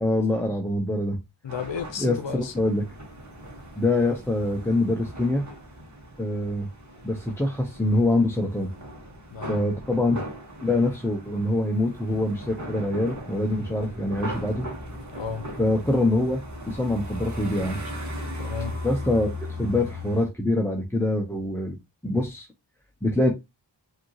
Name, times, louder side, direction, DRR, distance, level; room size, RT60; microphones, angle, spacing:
voice 1, 0.0-1.2 2.0-2.9 3.8-5.5 6.2-6.7 7.0-8.7 9.5-10.2 10.6-14.7 15.6-17.8 18.8-21.8 22.0-22.5 23.0-23.3, left 1 dB, 5° left, 0.8 m, -24 dB
voice 2, 1.4-2.7 9.3-9.6 15.1-15.5 18.4-18.8, left 6 dB, 75° left, 0.8 m, -33 dB
sound 1, 1.5-20.3, equal, 40° right, 1.5 m, -38 dB
5.0 x 2.9 x 3.0 m
wide cardioid pair, 75°, 44 cm